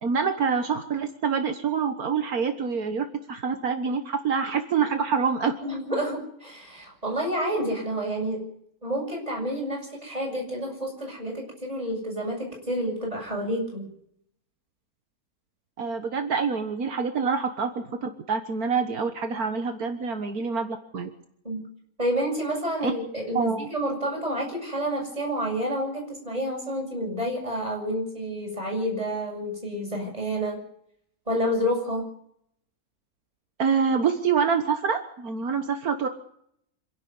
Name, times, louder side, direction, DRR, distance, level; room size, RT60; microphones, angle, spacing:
voice 1, 0.0-5.5 15.8-21.1 22.8-22.9 23.4-23.7 33.6-36.1, right 6 dB, 75° right, 6 dB, 1.9 m, -26 dB
voice 2, 5.6-8.4 8.8-13.9 21.4-21.6 22.0-30.6 31.3-32.0, equal, 25° right, 1 dB, 7.4 m, -29 dB
26.5 x 11.5 x 9.7 m, 0.71 s
omnidirectional pair, 1.6 m